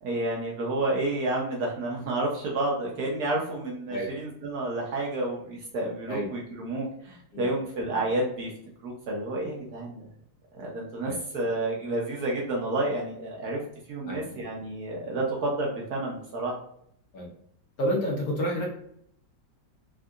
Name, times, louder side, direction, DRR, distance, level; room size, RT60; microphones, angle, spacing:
voice 1, 0.0-8.5 8.8-10.1 10.6-13.6 13.9-16.6, right 2 dB, 70° right, -2 dB, 1.0 m, -30 dB
voice 2, 17.8-18.7, equal, 60° left, -2 dB, 1.1 m, -29 dB
3.5 x 2.5 x 2.3 m, 0.70 s
omnidirectional pair, 2.0 m